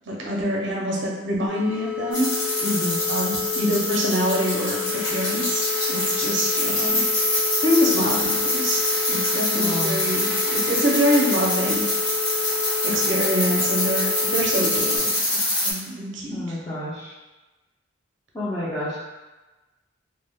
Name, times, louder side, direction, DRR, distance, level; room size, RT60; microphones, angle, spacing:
voice 1, 0.1-2.3 3.1-7.0 7.6-11.8 12.8-15.1 15.6-16.3, equal, 65° right, -2 dB, 0.5 m, -25 dB
sound 1, 1.5-15.0, left 10 dB, 35° left, 0.9 m, -31 dB
sound 2, 2.1-15.7, left 1 dB, 80° left, 1.0 m, -25 dB
voice 2, 2.6-3.0 9.5-10.0 16.3-17.1 18.3-19.0, left 1 dB, 20° left, -11 dB, 0.5 m, -29 dB
2.2 x 2.0 x 3.4 m, 1.1 s
head